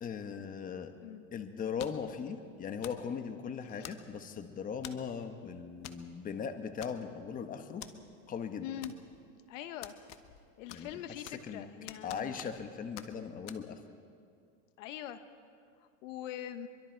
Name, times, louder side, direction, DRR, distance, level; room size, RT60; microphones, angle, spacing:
voice 1, 0.0-0.9 1.3-7.8 8.3-8.7 10.7-10.9 11.4-11.7 12.0-13.8, left 6 dB, 20° left, 8 dB, 1.1 m, -39 dB
sound 1, 1.8-2.1 2.8-3.1 3.8-4.3 4.8-5.1 5.8-6.0 6.3-6.4 6.8-7.3 7.8-7.9 8.8-9.3 9.8-10.4 10.7-11.5 11.9-12.7 13.0-13.1 13.5-13.6, left 12 dB, 40° left, 1.1 m, -48 dB
voice 2, 8.6-8.9 9.5-9.9 10.6-12.4 14.8-15.2 16.0-16.7, left 11 dB, 75° left, 10 dB, 1.2 m, -43 dB
24.5 x 23.0 x 4.6 m, 2.2 s
supercardioid pair, 135°, 38 cm